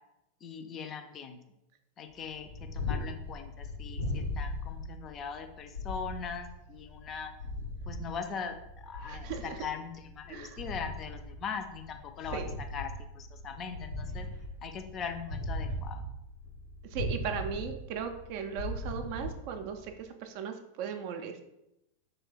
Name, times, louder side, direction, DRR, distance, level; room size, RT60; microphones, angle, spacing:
voice 1, 0.4-1.4 2.0-7.3 7.9-12.4 12.7-14.3 14.6-16.0, left 6 dB, 30° left, 6 dB, 0.4 m, -40 dB
Purr, 2.3-20.0, left 1 dB, 85° left, 0.6 m, -39 dB
voice 2, 9.0-9.6 10.3-10.6 12.3-12.5 16.9-21.4, right 7 dB, 45° right, 6 dB, 0.3 m, -37 dB
3.2 x 2.1 x 3.9 m, 0.87 s
figure-of-eight pair, 90°, 0 cm